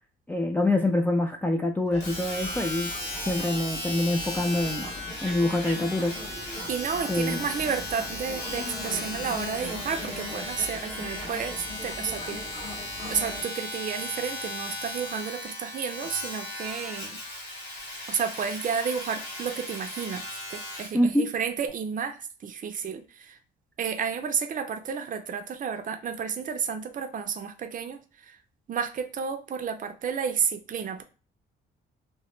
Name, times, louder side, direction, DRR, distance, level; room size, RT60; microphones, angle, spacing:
voice 1, 0.3-2.9 3.3-4.9 5.2-6.1 7.1-7.4 20.9-21.2, left 1 dB, 10° left, 1 dB, 0.3 m, -25 dB
sound 1, 1.9-13.4, left 1 dB, 30° left, 1.1 m, -40 dB
Domestic sounds home sounds, 2.0-21.0 21.7-21.8, left 1 dB, 55° left, 1.6 m, -37 dB
voice 2, 6.7-12.5 13.1-17.2 18.1-23.4 23.8-28.4 28.7-31.0, right 6 dB, 40° right, 7 dB, 0.5 m, -31 dB
2.9 x 2.0 x 3.1 m, 0.36 s
cardioid pair, 90°, 20 cm